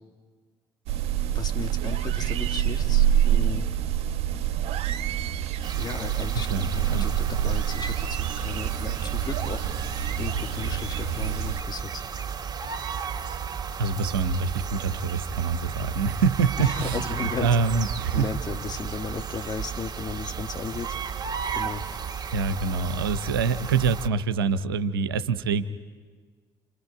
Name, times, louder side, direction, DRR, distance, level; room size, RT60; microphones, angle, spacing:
sound 1, 0.9-11.6, right 11 dB, 60° right, 0.9 m, -26 dB
voice 1, 1.3-3.7 5.8-12.0 16.6-17.5 18.1-21.0 21.5-21.9, left 5 dB, 35° left, 5 dB, 1.9 m, -35 dB
sound 2, 5.6-24.1, right 7 dB, 35° right, 2.0 m, -34 dB
voice 2, 6.5-7.1 13.8-18.3 22.3-25.6, right 5 dB, 85° right, 12 dB, 0.7 m, -25 dB
29.0 x 26.0 x 4.8 m, 1.5 s
hypercardioid pair, 50°, 12 cm